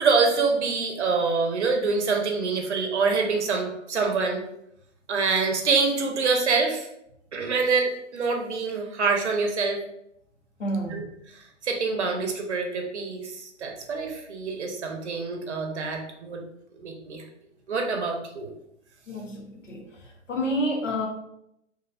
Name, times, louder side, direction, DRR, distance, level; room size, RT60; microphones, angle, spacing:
voice 1, 0.0-4.4 5.1-6.9 7.3-9.8 10.9-11.0 11.3-16.4 16.8-17.2 17.7-18.5, right 4 dB, 60° right, 2 dB, 0.7 m, -26 dB
voice 2, 10.6-11.1 19.1-19.8 20.3-21.1, equal, 75° left, -1 dB, 0.9 m, -28 dB
3.0 x 2.4 x 2.3 m, 0.78 s
figure-of-eight pair, 125°, 38 cm